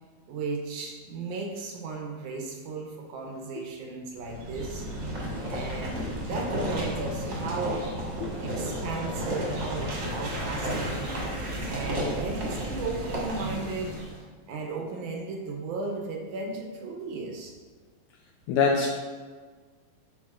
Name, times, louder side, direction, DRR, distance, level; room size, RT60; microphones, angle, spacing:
voice 1, 0.3-4.9 5.5-7.9 8.4-11.2 11.7-14.0 14.5-17.6, right 3 dB, 75° right, 1 dB, 2.0 m, -35 dB
sound 1, 4.2-14.2, equal, 45° right, 1.6 m, -32 dB
voice 2, 18.5-18.9, left 5 dB, 80° left, 0 dB, 1.7 m, -23 dB
10.5 x 4.0 x 2.4 m, 1.5 s
omnidirectional pair, 3.8 m